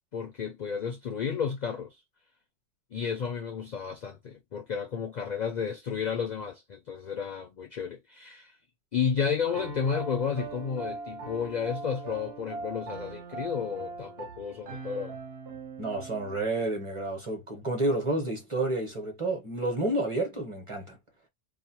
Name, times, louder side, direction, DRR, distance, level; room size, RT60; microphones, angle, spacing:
voice 1, 0.1-2.0 2.9-8.5 8.9-15.1, left 6 dB, 60° left, 0.5 m, -32 dB
Piano, 9.5-16.4, right 4 dB, 60° right, 0.9 m, -40 dB
voice 2, 15.8-21.0, right 2 dB, 30° right, 0.9 m, -30 dB
2.5 x 2.0 x 2.8 m
omnidirectional pair, 1.2 m